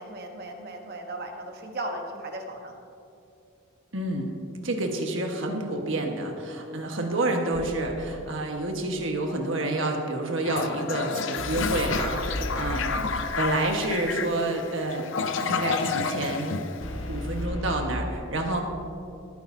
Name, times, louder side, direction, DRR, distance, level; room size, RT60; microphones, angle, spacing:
voice 1, 0.0-2.8 12.8-13.2, right 1 dB, 45° right, 3 dB, 1.2 m, -37 dB
voice 2, 3.9-4.3 4.6-15.1 15.4-16.6 17.1-18.6, right 2 dB, 65° right, 2 dB, 1.4 m, -29 dB
sound 1, 7.5-8.1 11.4-13.4 16.8-17.9, left 1 dB, 75° left, 1.3 m, -34 dB
Toilet flush, 10.4-17.4, left 5 dB, 60° left, 0.6 m, -30 dB
20.0 x 9.6 x 2.8 m, 2.6 s
head